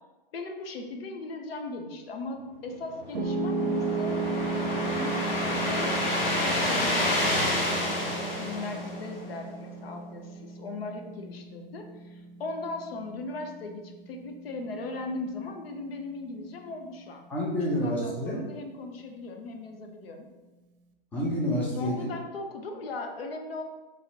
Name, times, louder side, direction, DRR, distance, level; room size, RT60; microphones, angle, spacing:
voice 1, 0.3-4.2 4.5-6.0 6.6-17.2 17.8-20.3 21.7-23.6, left 2 dB, 80° left, 4 dB, 0.7 m, -38 dB
sound 1, 2.9-9.4, left 1 dB, 50° left, 1.5 m, -29 dB
Piano, 3.1-15.3, right 3 dB, 70° right, 0.6 m, -35 dB
voice 2, 17.3-18.4 21.1-22.1, equal, 5° left, -4 dB, 0.4 m, -28 dB
3.1 x 2.7 x 4.4 m, 1.2 s
hypercardioid pair, 150°, 29 cm